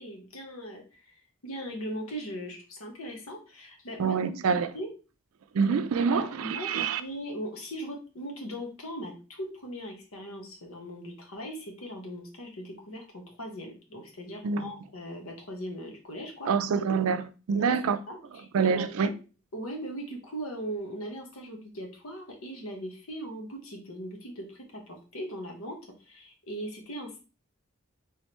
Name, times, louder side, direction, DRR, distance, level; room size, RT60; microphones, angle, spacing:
voice 1, 0.0-4.9 6.1-16.5 17.5-17.8 18.1-19.1 19.5-24.5 24.7-25.8 26.0-27.2, equal, 80° left, 1.1 m, -39 dB
voice 2, 4.0-4.7 5.5-7.0 14.4-14.7 16.5-18.0 18.5-19.1, right 5 dB, 85° right, 0.4 m, -26 dB
3.7 x 3.2 x 3.0 m
head